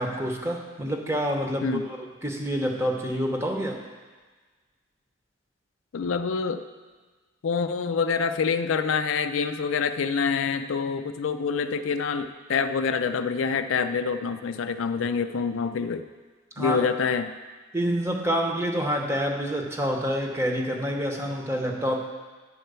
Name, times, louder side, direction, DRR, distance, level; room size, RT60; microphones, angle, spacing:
voice 1, 0.0-3.8 16.6-16.8 17.7-22.0, equal, 15° right, 2 dB, 0.8 m, -27 dB
voice 2, 5.9-6.6 7.4-16.1 16.6-17.3, left 5 dB, 75° left, 9 dB, 0.4 m, -26 dB
10.0 x 4.4 x 6.7 m, 1.4 s
head